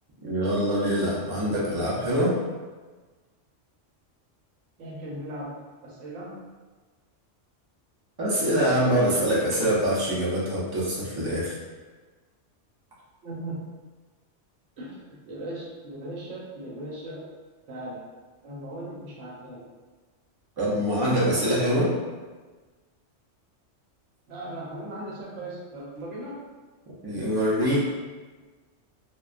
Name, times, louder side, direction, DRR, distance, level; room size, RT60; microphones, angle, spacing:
voice 1, 0.2-2.4 8.2-11.6 20.6-21.9 27.0-27.8, equal, 35° right, -7 dB, 0.4 m, -24 dB
voice 2, 4.8-5.6 5.8-6.4 13.2-13.6 14.8-15.0 15.3-17.2 17.7-18.0 18.4-19.6 24.3-26.4, right 1 dB, 80° right, -5 dB, 1.0 m, -37 dB
2.3 x 2.2 x 2.4 m, 1.3 s
omnidirectional pair, 1.3 m